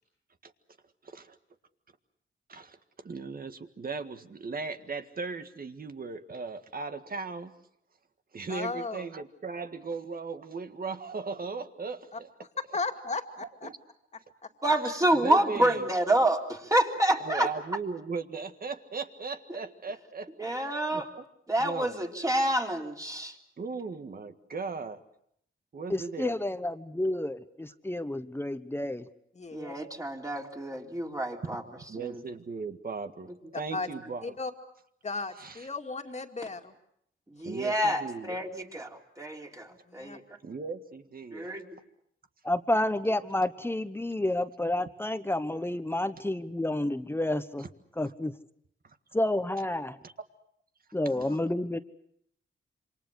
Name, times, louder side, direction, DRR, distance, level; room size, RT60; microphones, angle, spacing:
voice 1, 1.0-1.3 2.5-2.8 3.0-7.5 8.3-12.3 13.6-13.8 14.8-15.9 17.2-20.5 20.9-21.0 21.6-21.9 23.6-25.0 25.7-26.3 31.4-31.6 31.9-34.3 35.4-35.5 37.4-38.4 40.4-41.5, right 4 dB, 45° right, 1.8 m, -37 dB
voice 2, 8.5-9.1 12.1-12.2 12.6-13.7 14.4-14.5 29.3-29.8 33.5-33.9 34.2-34.5 35.0-36.7 39.7-40.2 51.0-51.4, left 3 dB, 35° left, 2.4 m, -36 dB
voice 3, 14.6-17.5 20.4-21.1 21.5-23.3 29.5-31.6 32.0-32.2 37.3-38.9 39.2-39.7 39.9-40.2 41.3-41.7, right 1 dB, 15° right, 3.4 m, -28 dB
voice 4, 25.9-29.1 42.4-47.7 48.0-48.3 49.1-50.0 50.9-51.8, left 1 dB, 10° left, 1.2 m, -30 dB
27.5 x 25.5 x 6.5 m
cardioid pair, 90°, 20 cm